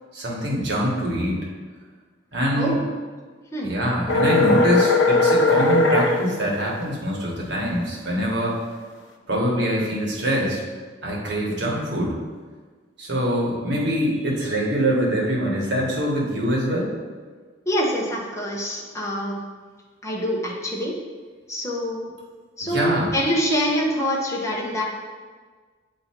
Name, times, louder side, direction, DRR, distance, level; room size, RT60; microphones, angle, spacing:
voice 1, 0.1-1.4 2.3-2.8 3.6-8.6 9.3-10.6 11.0-12.1 13.0-16.9 22.6-23.1, equal, 65° right, -3 dB, 1.3 m, -24 dB
sound 1, 4.1-6.1, left 3 dB, 90° left, 0.7 m, -18 dB
voice 2, 17.7-19.4 20.0-20.9 21.5-22.1 22.6-24.8, equal, 15° left, -3 dB, 0.8 m, -25 dB
8.3 x 2.9 x 4.4 m, 1.5 s
head